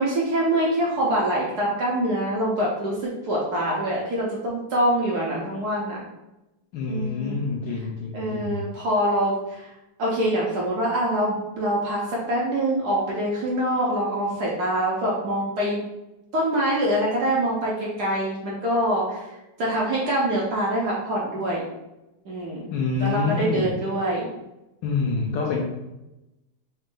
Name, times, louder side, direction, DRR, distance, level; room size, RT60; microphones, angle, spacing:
voice 1, 0.0-6.0 6.9-7.4 8.1-9.7 10.0-15.8 16.3-19.3 19.6-21.6 22.3-22.6 23.0-24.3, right 1 dB, 60° right, -5 dB, 1.1 m, -24 dB
voice 2, 6.7-8.7 22.7-23.7 24.8-25.6, left 4 dB, 70° left, -1 dB, 1.1 m, -27 dB
4.0 x 2.5 x 3.6 m, 0.97 s
omnidirectional pair, 2.4 m